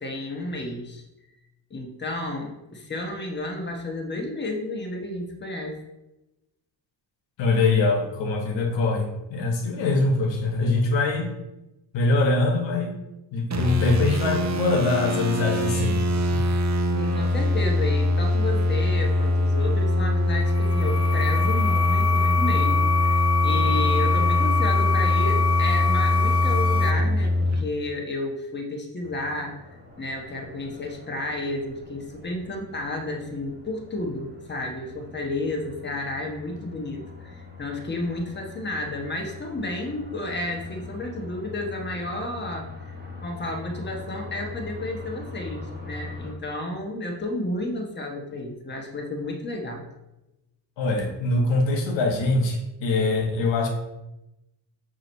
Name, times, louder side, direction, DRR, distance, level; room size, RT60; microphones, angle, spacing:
voice 1, 0.0-1.0 1.7-5.8 16.9-29.5 30.0-42.9 43.2-49.9, left 2 dB, 25° left, 1 dB, 1.1 m, -32 dB
voice 2, 7.4-11.3 11.9-13.0 13.3-16.0 50.8-53.7, left 3 dB, 85° left, 1 dB, 1.2 m, -23 dB
sound 1, 13.5-27.6, left 1 dB, 40° right, 0.8 m, -23 dB
sound 2, 20.4-26.9, left 5 dB, 65° left, 0.7 m, -25 dB
sound 3, 29.0-46.3, left 3 dB, 25° right, 1.2 m, -42 dB
6.3 x 2.9 x 5.2 m, 0.96 s
cardioid pair, 115°, 43 cm